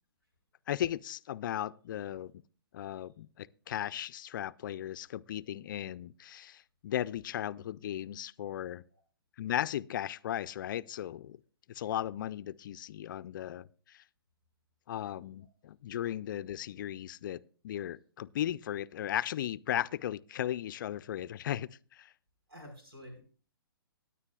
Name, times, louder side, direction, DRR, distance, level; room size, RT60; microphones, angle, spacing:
voice 1, 0.7-2.3 2.7-8.8 9.4-11.4 11.7-14.0 14.9-22.1, left 11 dB, 55° left, 0.4 m, -36 dB
voice 2, 22.5-23.2, equal, 90° right, 5.1 m, -49 dB
17.5 x 9.6 x 2.3 m
hypercardioid pair, 130°, 13 cm